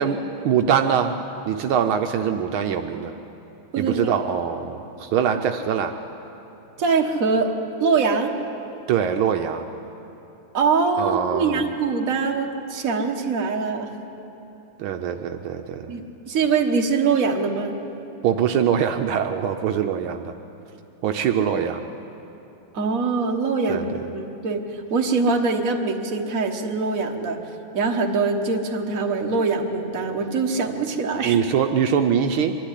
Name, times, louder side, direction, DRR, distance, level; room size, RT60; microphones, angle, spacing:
voice 1, 0.0-3.2 3.8-5.9 8.9-9.7 11.0-11.7 14.8-15.9 18.2-20.3 21.0-21.8 23.7-24.1 31.2-32.6, right 8 dB, 75° right, 5 dB, 1.5 m, -23 dB
voice 2, 6.8-7.5 7.8-8.3 10.5-14.0 15.9-17.8 22.7-27.4 27.7-31.4, right 4 dB, 45° right, 2 dB, 1.7 m, -23 dB
24.0 x 12.0 x 9.9 m, 2.9 s
omnidirectional pair, 2.3 m